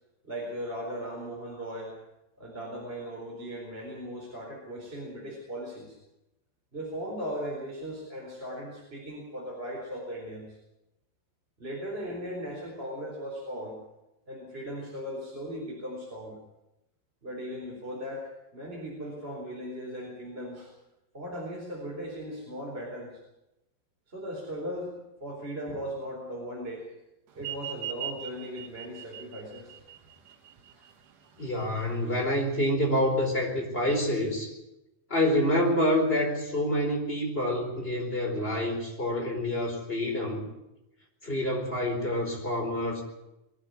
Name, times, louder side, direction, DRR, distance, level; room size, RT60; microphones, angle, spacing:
voice 1, 0.2-2.0 2.4-6.0 6.7-10.6 11.6-13.8 14.3-16.4 17.2-20.7 21.1-23.2 24.1-26.9 27.3-29.7 30.7-30.9, equal, 15° right, -3 dB, 4.3 m, -38 dB
sound 1, 27.4-32.4, right 11 dB, 70° right, 3.1 m, -41 dB
voice 2, 31.4-34.5 35.1-40.5 41.2-43.0, left 1 dB, 15° left, 2 dB, 4.6 m, -27 dB
22.5 x 12.5 x 9.6 m, 0.92 s
omnidirectional pair, 3.9 m